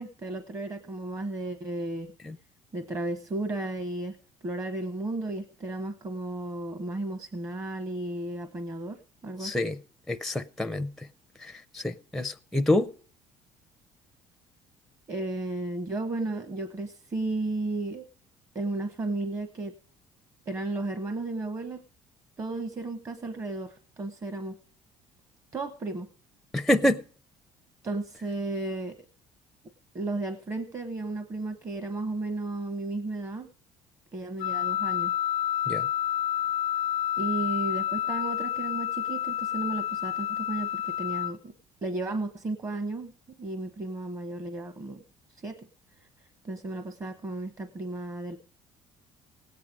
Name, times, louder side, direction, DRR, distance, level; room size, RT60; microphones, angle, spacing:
voice 1, 0.0-2.1 2.7-4.2 4.4-9.6 15.1-18.0 18.5-19.8 20.5-21.8 22.4-24.6 25.5-26.1 27.8-29.0 29.9-33.5 34.1-35.1 37.2-41.5 41.8-43.1 43.4-45.0 45.4-45.7 46.4-48.4, right 2 dB, 30° right, 1.0 m, -34 dB
voice 2, 9.4-9.8 10.1-11.1 11.4-12.9 26.5-27.0 35.7-35.9, left 1 dB, ahead, 0.5 m, -27 dB
Wind instrument woodwind instrument, 34.4-41.3, left 11 dB, 80° left, 0.5 m, -29 dB
17.5 x 8.7 x 5.1 m
cardioid pair, 130°, 10 cm